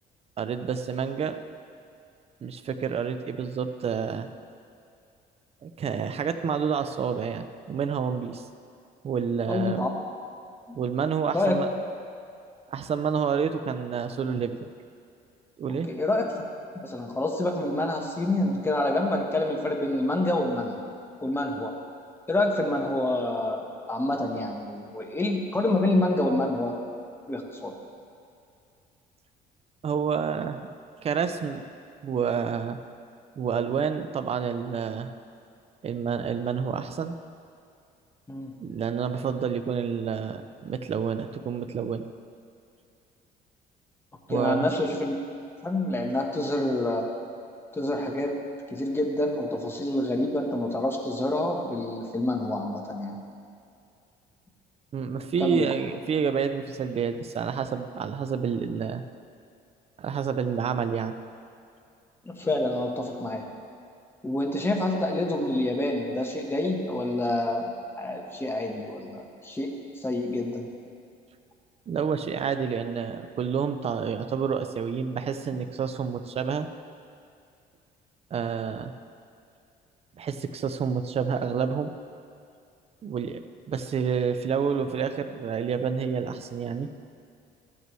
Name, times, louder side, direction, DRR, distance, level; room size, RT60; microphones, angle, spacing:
voice 1, 0.4-1.4 2.4-4.3 5.6-8.4 9.0-9.8 10.7-11.7 12.7-14.6 15.6-15.9 29.8-30.7 31.0-31.6 32.0-32.8 33.4-35.1 35.8-37.1 38.6-42.0 44.3-44.7 54.9-59.0 60.0-61.1 71.9-76.7 78.3-78.9 80.2-81.9 83.0-83.4 83.7-86.9, right 6 dB, 35° right, 9 dB, 0.6 m, -29 dB
voice 2, 9.5-9.9 11.3-11.6 15.8-16.3 16.8-20.8 21.2-21.7 22.3-23.6 23.9-26.8 27.3-27.7 38.3-38.5 44.3-45.1 45.6-47.1 47.7-48.4 48.7-53.2 55.4-55.7 62.2-63.4 64.2-67.7 68.0-70.7, left 1 dB, 15° left, 1 dB, 1.2 m, -27 dB
14.0 x 8.1 x 3.1 m, 2.4 s
cardioid pair, 110°, 17 cm